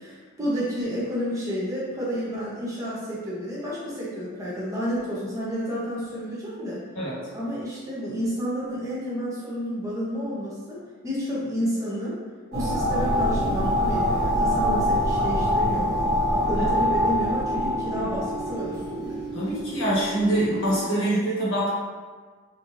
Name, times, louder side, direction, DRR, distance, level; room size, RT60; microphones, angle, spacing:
voice 1, 0.0-6.8 7.3-12.2 12.5-16.0 16.3-19.2 21.0-21.3, equal, 15° right, -8 dB, 0.8 m, -30 dB
sound 1, 12.5-20.9, right 2 dB, 50° right, 0.6 m, -35 dB
sound 2, 12.5-18.9, equal, 85° right, 1.0 m, -24 dB
voice 2, 19.3-21.7, right 1 dB, 70° left, -7 dB, 1.3 m, -24 dB
4.3 x 2.9 x 2.6 m, 1.5 s
head